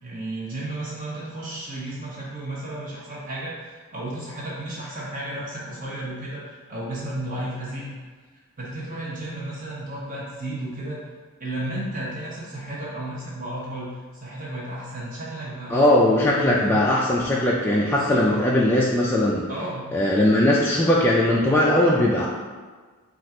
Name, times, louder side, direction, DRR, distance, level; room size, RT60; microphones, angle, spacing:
voice 1, 0.0-8.0 8.6-11.0 11.4-16.8 18.0-18.5 19.5-19.9, right 1 dB, 35° right, -6 dB, 0.9 m, -33 dB
voice 2, 15.7-19.5 19.9-22.3, left 1 dB, 10° left, -5 dB, 0.3 m, -19 dB
4.1 x 2.5 x 4.3 m, 1.4 s
head